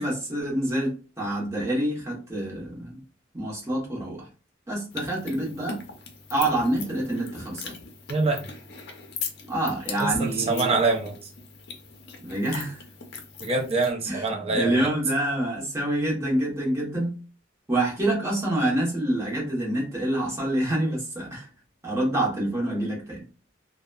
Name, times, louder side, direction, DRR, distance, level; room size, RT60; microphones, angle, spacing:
voice 1, 0.0-3.0 3.3-4.3 4.7-5.8 6.3-7.8 9.5-10.7 12.2-12.8 14.1-14.2 14.5-17.2 17.7-21.5 21.8-23.2, right 1 dB, 15° right, 1.0 m, -27 dB
sound 1, 4.9-13.9, left 5 dB, 55° left, 0.5 m, -40 dB
voice 2, 8.1-8.5 10.0-11.3 13.4-14.9, right 3 dB, 30° right, 0.5 m, -25 dB
2.8 x 2.1 x 2.3 m
head